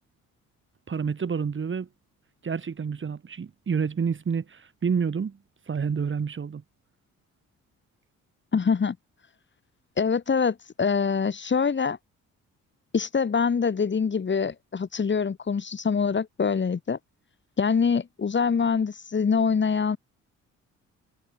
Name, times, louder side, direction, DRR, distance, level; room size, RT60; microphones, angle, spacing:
voice 1, 0.9-1.9 2.4-5.4 5.7-6.6, right 6 dB, 40° right, 5.5 m, -28 dB
voice 2, 8.5-9.0 10.0-12.0 12.9-17.0 17.6-20.0, left 6 dB, 40° left, 3.8 m, -24 dB
cardioid pair, 90°, 30 cm